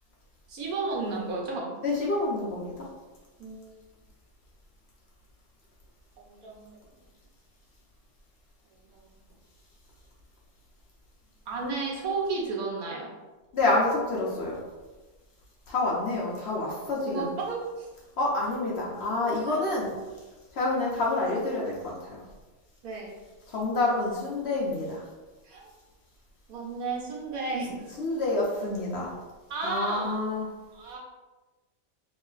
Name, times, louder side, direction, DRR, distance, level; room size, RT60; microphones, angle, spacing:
voice 1, 0.5-1.8 3.4-3.7 6.2-6.7 8.9-9.0 11.5-13.1 17.0-17.9 19.5-19.7 22.8-23.1 25.4-25.7 26.5-27.9 29.5-30.2 30.7-31.0, right 3 dB, 90° right, -2 dB, 1.3 m, -33 dB
voice 2, 1.8-2.8 13.5-14.5 15.7-17.3 18.2-19.9 20.6-22.2 23.5-25.0 27.9-29.1 29.6-30.5, left 2 dB, 60° left, -3 dB, 0.8 m, -28 dB
3.1 x 2.1 x 3.7 m, 1.2 s
omnidirectional pair, 1.5 m